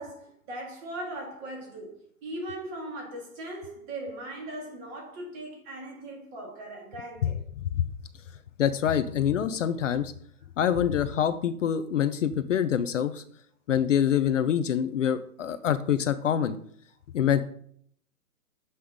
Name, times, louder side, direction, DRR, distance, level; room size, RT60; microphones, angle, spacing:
voice 1, 0.0-2.0 2.2-7.4, right 1 dB, 25° right, 2.2 m, -39 dB
voice 2, 8.6-10.1 10.6-13.2 13.7-16.6 17.1-17.4, left 9 dB, 55° left, 0.6 m, -25 dB
7.8 x 5.6 x 4.9 m
hypercardioid pair, 155°, 46 cm